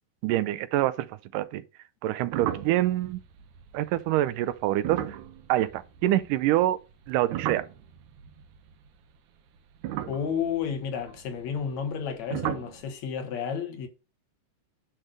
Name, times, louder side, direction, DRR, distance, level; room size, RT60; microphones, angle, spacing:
voice 1, 0.2-1.6 2.0-3.2 3.7-5.2 5.5-6.8 7.1-7.7, right 14 dB, 90° right, 2.3 m, -26 dB
sound 1, 2.3-6.7 6.9-9.1 9.7-12.1 12.3-12.8, right 12 dB, 70° right, 2.1 m, -36 dB
voice 2, 10.1-13.9, left 7 dB, 65° left, 2.6 m, -31 dB
10.0 x 3.7 x 6.4 m
omnidirectional pair, 3.7 m